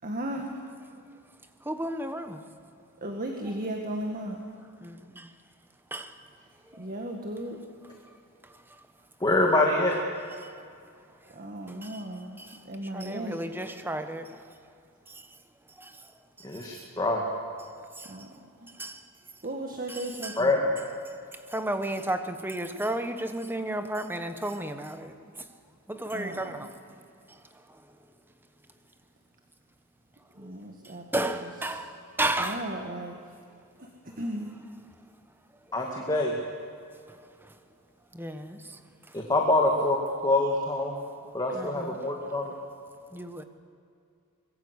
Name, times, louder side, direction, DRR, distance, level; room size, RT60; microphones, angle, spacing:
voice 1, 0.0-0.6 3.0-4.4 6.8-7.6 11.3-13.4 18.0-18.3 18.6-18.7 19.4-20.8 26.1-26.7 30.4-31.5 32.4-33.2 33.8-34.5, right 1 dB, 40° right, 2 dB, 1.9 m, -36 dB
voice 2, 1.6-2.4 4.8-4.9 5.9-6.1 6.7-6.9 10.4-10.5 11.7-12.0 12.5-12.6 12.9-14.4 15.1-15.2 15.8-16.0 16.6-16.7 18.0-18.1 18.8-19.0 19.9-20.4 21.5-25.2 25.9-26.7 27.3-27.4 31.1-32.6 37.1-37.2 38.1-38.8 41.5-42.0 43.1-43.4, right 1 dB, 10° right, 8 dB, 1.2 m, -33 dB
voice 3, 9.2-10.0 16.4-17.2 20.4-20.7 35.7-36.3 39.1-40.0 40.2-41.0 41.3-42.5, left 2 dB, 20° left, 0 dB, 2.2 m, -25 dB
24.0 x 22.0 x 8.3 m, 2.3 s
head